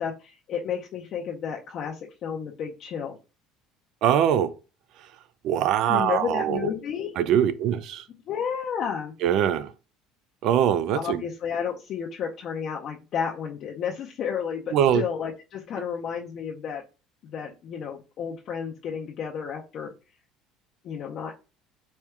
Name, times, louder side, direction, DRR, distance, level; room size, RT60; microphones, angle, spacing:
voice 1, 0.0-3.2 5.9-7.1 8.3-9.1 10.9-16.8 17.2-19.9 20.8-21.3, left 7 dB, 50° left, 0.6 m, -32 dB
voice 2, 4.0-4.5 5.4-6.7 7.2-8.0 9.2-9.7 10.4-11.2 14.7-15.0, right 10 dB, 60° right, 0.4 m, -22 dB
4.4 x 2.3 x 3.4 m
cardioid pair, 120°, 0 cm